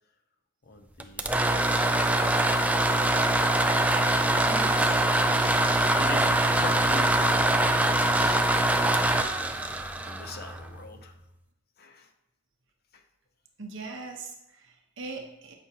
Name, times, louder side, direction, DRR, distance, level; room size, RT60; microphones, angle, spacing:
voice 1, 0.6-1.7 2.1-3.0 3.7-4.4 5.0-8.4 8.7-9.3 10.0-11.2 11.8-12.1 12.9-13.0, left 3 dB, 45° left, 7 dB, 0.7 m, -43 dB
sound 1, 1.0-10.8, right 1 dB, 5° right, 0.3 m, -23 dB
voice 2, 4.5-4.9 13.6-15.5, right 3 dB, 60° right, 2 dB, 1.1 m, -41 dB
8.1 x 6.0 x 2.9 m, 0.90 s
head